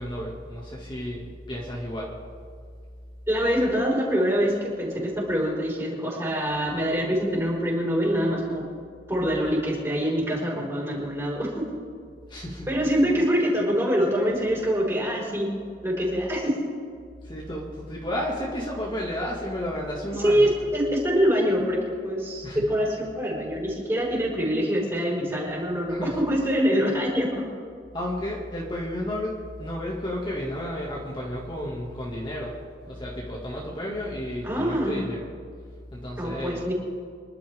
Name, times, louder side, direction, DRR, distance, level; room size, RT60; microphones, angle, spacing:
voice 1, 0.0-2.1 12.3-12.7 17.2-20.5 22.4-22.6 25.9-26.2 27.9-35.3 35.9-36.6, equal, 25° left, -4 dB, 2.2 m, -32 dB
voice 2, 3.3-8.7 9.1-11.7 12.7-15.5 15.8-16.5 20.2-27.5 34.4-35.0 36.2-36.7, equal, 15° right, -5 dB, 5.2 m, -25 dB
26.5 x 12.0 x 3.7 m, 2.1 s
head